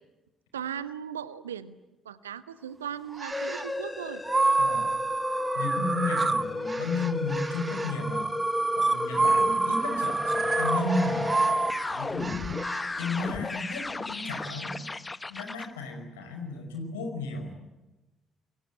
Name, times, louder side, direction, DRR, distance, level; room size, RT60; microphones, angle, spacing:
voice 1, 0.5-1.8 2.0-4.2 9.1-9.3, right 9 dB, 80° right, 16 dB, 0.9 m, -38 dB
sound 1, 3.1-3.7 4.2-12.8, right 3 dB, 25° right, 1.6 m, -28 dB
sound 2, 3.3-15.7, left 3 dB, 20° left, 1.3 m, -34 dB
voice 2, 5.6-8.3 8.8-11.5 11.9-12.6 13.0-14.8 15.3-17.5, left 3 dB, 75° left, 4 dB, 5.3 m, -33 dB
28.0 x 23.5 x 8.7 m, 1.0 s
figure-of-eight pair, 45°, 0 cm